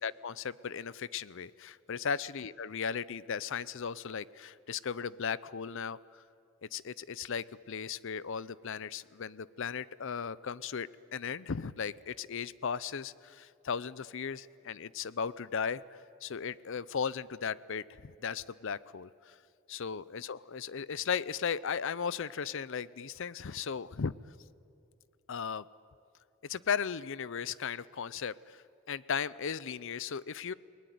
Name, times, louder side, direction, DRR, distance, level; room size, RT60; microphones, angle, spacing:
voice 1, 0.0-6.0 6.7-19.3 19.7-24.1 25.3-25.7 26.4-28.6 28.9-30.5, left 6 dB, 65° left, 19 dB, 0.6 m, -36 dB
29.5 x 19.5 x 9.4 m, 2.6 s
head